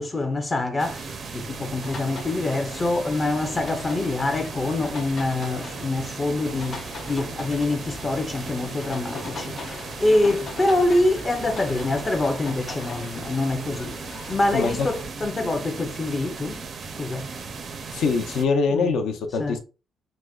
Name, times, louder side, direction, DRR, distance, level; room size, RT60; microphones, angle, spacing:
voice 1, 0.0-16.6 17.0-17.3 18.7-18.9 19.4-19.6, left 2 dB, 20° left, 0.4 m, -25 dB
sound 1, 0.8-18.4, right 4 dB, 40° right, 0.4 m, -37 dB
sound 2, 1.8-15.1, left 4 dB, 45° left, 0.9 m, -40 dB
voice 2, 14.5-14.9 17.9-19.6, left 4 dB, 70° left, 0.5 m, -23 dB
4.8 x 2.0 x 2.3 m
cardioid pair, 150°, 0 cm